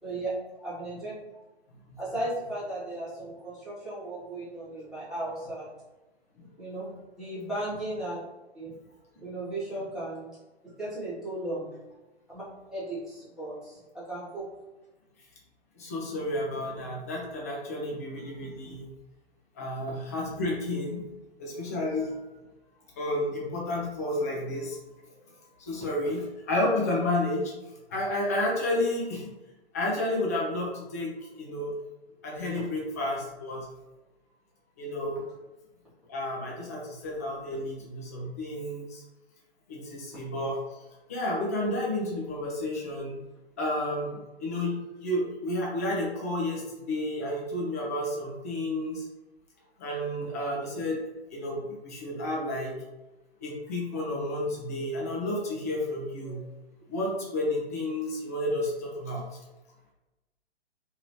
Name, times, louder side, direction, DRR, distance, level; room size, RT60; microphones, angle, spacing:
voice 1, 0.6-1.1 2.0-5.7 6.6-6.9 7.2-8.2 8.5-8.7 9.1-10.3 10.8-11.7 12.3-12.4 12.7-14.5, right 1 dB, ahead, -12 dB, 1.1 m, -35 dB
voice 2, 15.8-18.9 19.6-21.0 21.4-22.2 23.0-24.8 25.6-27.5 27.9-29.3 29.7-31.7 32.2-33.7 34.8-35.2 36.1-39.0 39.7-40.6 41.1-43.2 43.6-49.1 49.8-51.0 51.3-52.7 53.4-56.4 56.9-59.3, left 1 dB, 15° left, -3 dB, 0.3 m, -31 dB
2.9 x 2.7 x 2.9 m, 1.1 s
figure-of-eight pair, 125°, 34 cm